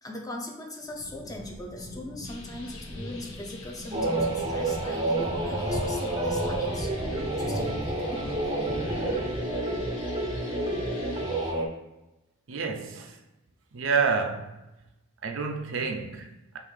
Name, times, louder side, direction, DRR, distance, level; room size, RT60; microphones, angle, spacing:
voice 1, 0.0-6.9 7.4-8.6, left 1 dB, 20° left, 0.6 m, -40 dB
sound 1, 0.8-10.1, left 1 dB, 55° left, 1.2 m, -39 dB
sound 2, 2.2-11.5, left 3 dB, 80° left, 0.7 m, -47 dB
sound 3, 3.9-11.7, right 2 dB, 25° right, 0.6 m, -29 dB
voice 2, 12.5-13.2 13.7-14.6 15.2-16.6, right 5 dB, 70° right, 0.5 m, -29 dB
5.5 x 2.6 x 3.2 m
head